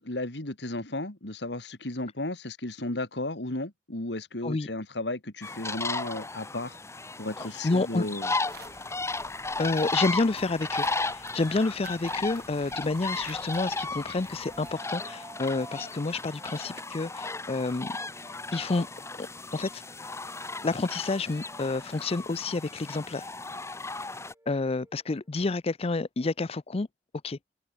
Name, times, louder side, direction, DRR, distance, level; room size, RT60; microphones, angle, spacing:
voice 1, 0.0-6.8 7.2-8.3, left 2 dB, 70° left, 2.6 m, -34 dB
sound 1, 5.4-24.3, left 3 dB, 15° left, 1.6 m, -35 dB
voice 2, 7.6-8.0 9.6-18.0 18.5-18.9 19.2-19.3 19.5-19.8 20.6-23.3 24.5-26.9 27.2-27.4, left 3 dB, 35° left, 0.5 m, -29 dB
sound 2, 8.4-14.7, right 4 dB, 65° right, 4.2 m, -52 dB
sound 3, 14.5-19.3 19.7-25.3, right 1 dB, 15° right, 7.6 m, -55 dB
head